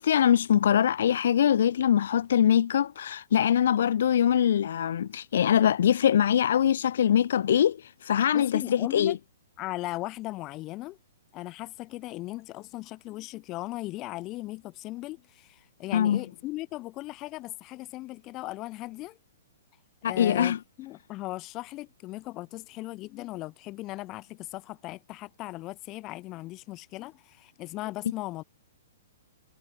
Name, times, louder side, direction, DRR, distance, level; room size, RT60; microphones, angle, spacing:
voice 1, 0.0-9.2 15.9-16.2 20.0-20.6, left 9 dB, 65° left, 0.5 m, -23 dB
voice 2, 8.3-9.2 9.6-11.0 11.3-19.2 20.1-28.4, left 18 dB, 30° left, 7.0 m, -38 dB
hypercardioid pair, 135°, 0 cm